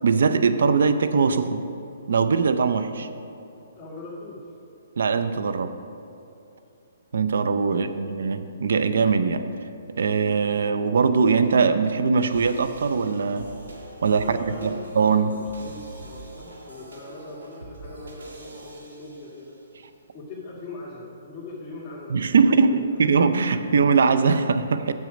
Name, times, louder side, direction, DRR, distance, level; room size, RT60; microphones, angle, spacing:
voice 1, 0.0-1.6 2.1-3.1 5.0-5.7 7.1-9.4 10.0-13.5 14.0-15.3 22.1-24.9, right 5 dB, 70° right, 9 dB, 0.6 m, -21 dB
voice 2, 3.8-4.5 7.7-8.3 14.0-15.0 15.3-19.6 20.1-23.1, left 2 dB, 15° left, -12 dB, 2.2 m, -41 dB
sound 1, 10.4-19.7, right 1 dB, 85° right, 1.6 m, -44 dB
9.4 x 7.5 x 5.2 m, 2.8 s
hypercardioid pair, 140°, 0 cm